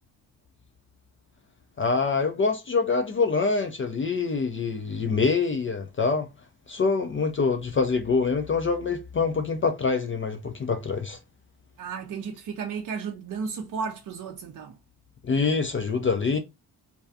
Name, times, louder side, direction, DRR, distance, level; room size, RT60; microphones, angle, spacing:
voice 1, 1.8-6.3 6.7-11.2 15.2-16.4, left 4 dB, 30° left, 0.4 m, -25 dB
voice 2, 11.8-14.8, right 6 dB, 45° right, 0.5 m, -34 dB
2.3 x 2.3 x 2.5 m
hypercardioid pair, 40°, 47 cm